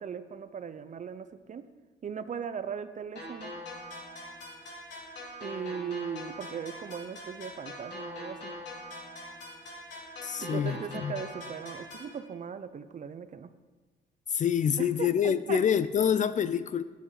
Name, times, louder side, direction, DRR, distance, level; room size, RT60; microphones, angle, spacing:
voice 1, 0.0-1.7 2.0-3.5 5.4-8.5 10.4-13.5 14.8-15.6, right 7 dB, 40° right, 12 dB, 0.5 m, -38 dB
sound 1, 3.2-12.2, left 1 dB, 65° left, 3.2 m, -43 dB
voice 2, 10.2-11.2 14.3-16.8, left 8 dB, 40° left, 15 dB, 0.4 m, -27 dB
7.9 x 7.4 x 4.8 m, 1.3 s
cardioid pair, 90°, 20 cm